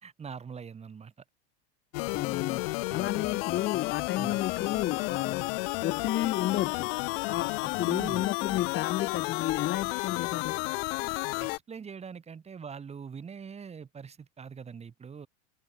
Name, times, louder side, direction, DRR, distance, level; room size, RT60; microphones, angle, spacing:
voice 1, 0.0-1.1 2.9-3.0 4.2-4.4 7.9-8.2 11.4-15.3, right 6 dB, 20° right, 2.8 m, -43 dB
sound 1, 1.9-11.6, left 29 dB, 60° left, 0.6 m, -32 dB
voice 2, 2.1-6.9 7.3-10.6, left 13 dB, 35° left, 1.4 m, -32 dB
supercardioid pair, 130°, 34 cm